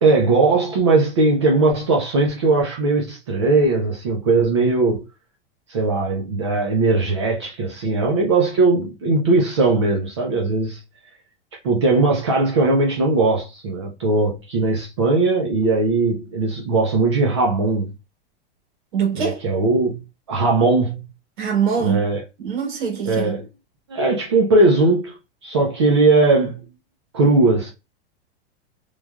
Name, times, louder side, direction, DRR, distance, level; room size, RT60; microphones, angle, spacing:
voice 1, 0.0-5.0 5.7-10.8 11.5-17.9 19.1-20.0 20.3-21.1 21.8-22.2 23.1-23.5 23.9-25.2 25.4-26.6 27.1-27.7, right 3 dB, 30° right, 0.4 m, -19 dB
voice 2, 18.9-19.3 21.4-22.0 22.4-23.4, right 7 dB, 55° right, 1.6 m, -23 dB
3.1 x 2.2 x 2.3 m
supercardioid pair, 180°, 30 cm